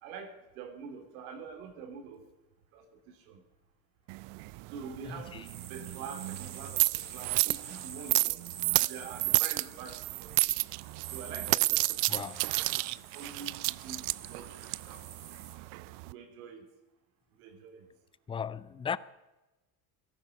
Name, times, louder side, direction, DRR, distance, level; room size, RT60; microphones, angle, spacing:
voice 1, 0.0-2.2 2.7-3.4 4.7-5.3 5.7-8.4 8.7-10.5 11.1-15.0 15.7-16.6 17.4-17.8, right 6 dB, 85° right, 3.2 m, -46 dB
sound 1, 4.1-16.1, right 26 dB, 70° right, 0.5 m, -31 dB
voice 2, 5.0-5.4 12.1-12.4 18.3-19.0, left 7 dB, 15° left, 0.4 m, -36 dB
sound 2, 5.4-15.5, right 8 dB, 50° right, 2.7 m, -47 dB
17.0 x 14.0 x 5.2 m
supercardioid pair, 110°, 41 cm